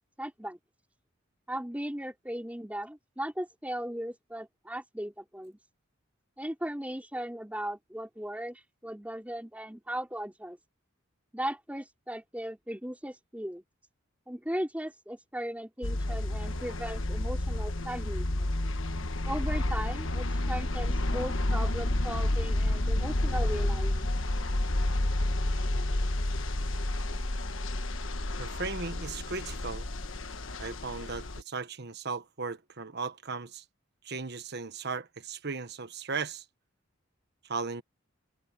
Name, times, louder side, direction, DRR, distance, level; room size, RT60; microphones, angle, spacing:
voice 1, 0.2-0.6 1.5-5.6 6.4-10.6 11.3-13.6 14.3-18.6 19.3-24.1, right 1 dB, 5° right, 4.2 m, -37 dB
sound 1, 15.8-31.4, left 1 dB, 65° left, 1.4 m, -30 dB
voice 2, 28.4-29.9 30.6-33.6 34.0-36.4 37.4-37.8, right 4 dB, 50° right, 1.3 m, -36 dB
head